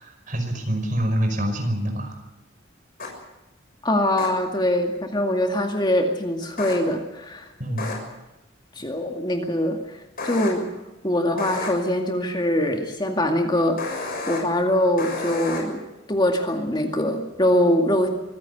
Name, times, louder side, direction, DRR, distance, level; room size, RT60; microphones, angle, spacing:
voice 1, 0.0-2.1 7.6-7.9, equal, 45° right, 5 dB, 5.4 m, -26 dB
sound 1, 3.0-3.1 4.2-4.3 6.6-6.8 7.8-7.9 10.2-10.5 11.4-11.7 13.8-14.4 15.0-15.6, left 3 dB, 50° left, 6.7 m, -30 dB
voice 2, 3.8-7.5 8.8-10.7 11.0-15.8 16.1-18.1, left 1 dB, 25° left, 3 dB, 2.2 m, -23 dB
25.0 x 16.0 x 8.3 m, 1.0 s
head